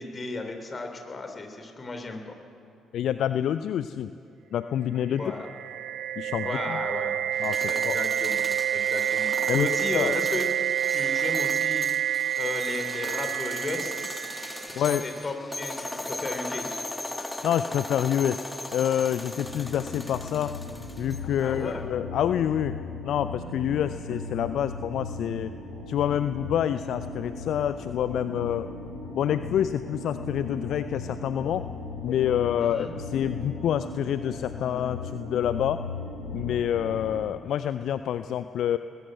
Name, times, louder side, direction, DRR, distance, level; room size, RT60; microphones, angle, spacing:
voice 1, 0.0-2.4 5.2-5.5 6.4-7.1 7.7-8.4 8.7-10.5 10.9-11.9 12.4-14.0 14.8-16.7 21.4-21.8 32.6-32.9, left 3 dB, 30° left, 5 dB, 3.5 m, -34 dB
voice 2, 2.9-4.1 4.5-5.3 6.2-6.8 7.4-8.0 9.5-9.7 9.9-10.1 14.8-15.0 17.2-20.5 21.0-22.8 23.0-25.5 25.9-28.7 29.1-31.6 32.0-35.8 36.3-38.8, left 10 dB, 60° left, 12 dB, 0.5 m, -27 dB
sound 1, 5.2-15.1, right 11 dB, 60° right, 0.5 m, -28 dB
sound 2, 7.3-21.5, left 2 dB, 15° left, 1.6 m, -38 dB
sound 3, 19.4-37.2, left 3 dB, 90° left, 3.5 m, -37 dB
21.0 x 20.0 x 7.9 m, 2.7 s
figure-of-eight pair, 45°, 0 cm